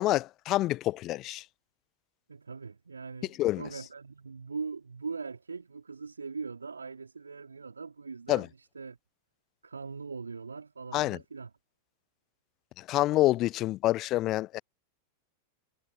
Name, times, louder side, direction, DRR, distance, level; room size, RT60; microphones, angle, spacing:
voice 1, 0.0-1.4 3.4-3.6 8.3-8.5 10.9-11.2 12.8-14.6, left 16 dB, 35° left, 0.4 m, -27 dB
voice 2, 2.3-9.0 9.6-11.5, right 4 dB, 75° right, 3.1 m, -41 dB
figure-of-eight pair, 90°, 0 cm